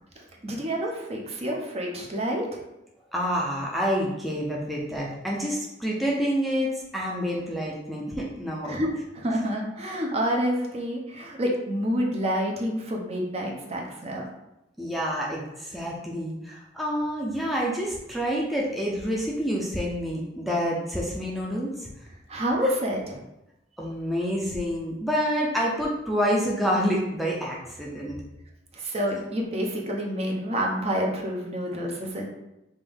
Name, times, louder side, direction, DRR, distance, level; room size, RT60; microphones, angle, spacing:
voice 1, 0.2-2.6 8.7-8.9 9.1-14.3 22.3-23.2 28.7-32.3, equal, 35° right, -1 dB, 0.8 m, -28 dB
voice 2, 3.1-8.8 14.8-21.9 23.8-28.2, equal, ahead, -4 dB, 0.6 m, -28 dB
5.5 x 2.6 x 3.5 m, 0.90 s
head